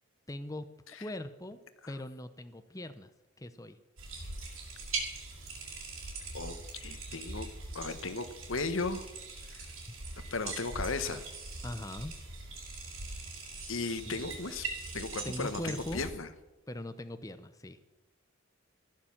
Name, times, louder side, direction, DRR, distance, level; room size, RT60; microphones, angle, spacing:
voice 1, 0.3-0.7 1.0-1.6 1.9-3.1 3.4-3.8 9.9-10.0 11.6-12.1 14.1-14.3 15.2-16.0 16.7-17.8, left 1 dB, 15° left, 10 dB, 0.7 m, -40 dB
sound 1, 4.0-16.1, right 3 dB, 85° right, 5.6 m, -41 dB
voice 2, 6.3-7.5 7.7-9.1 10.3-11.2 13.7-14.6 14.9-16.3, left 3 dB, 80° left, 11 dB, 1.3 m, -36 dB
15.5 x 11.5 x 7.3 m, 1.1 s
head